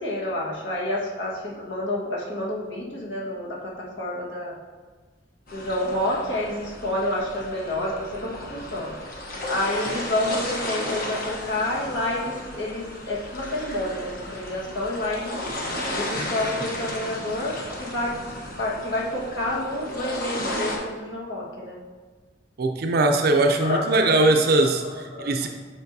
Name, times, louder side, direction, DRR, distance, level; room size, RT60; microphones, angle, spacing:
voice 1, 0.0-4.5 5.5-9.0 9.5-15.3 15.9-18.2 18.6-21.8 23.3-25.4, left 1 dB, 70° left, -4 dB, 1.5 m, -29 dB
sound 1, 5.5-20.8, left 1 dB, 50° left, 1.1 m, -34 dB
voice 2, 22.6-25.5, right 2 dB, 55° right, 4 dB, 0.4 m, -20 dB
8.1 x 5.5 x 2.7 m, 1.4 s
head